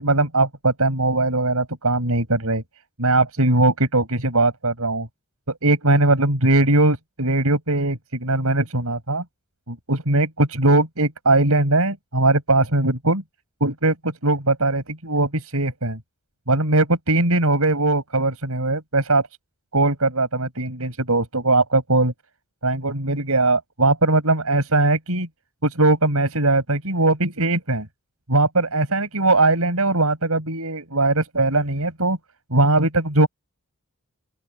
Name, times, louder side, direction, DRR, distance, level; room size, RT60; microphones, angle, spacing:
voice 1, 0.0-2.6 3.0-5.1 5.6-9.2 9.7-13.2 13.6-16.0 16.5-19.2 19.7-22.1 22.6-25.3 25.6-27.9 28.3-32.2 32.5-33.3, right 2 dB, 70° right, 7.8 m, -20 dB
open air
head